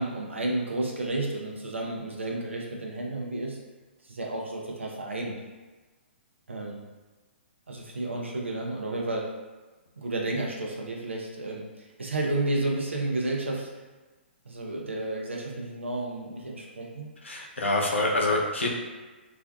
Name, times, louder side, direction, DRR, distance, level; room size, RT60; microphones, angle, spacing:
voice 1, 0.0-3.6 4.1-5.4 6.5-6.8 7.7-9.3 10.0-13.7 14.5-17.1, right 2 dB, 85° right, -1 dB, 0.5 m, -31 dB
voice 2, 17.2-18.7, left 2 dB, 85° left, -1 dB, 0.5 m, -26 dB
2.5 x 2.2 x 2.2 m, 1.3 s
figure-of-eight pair, 125°, 6 cm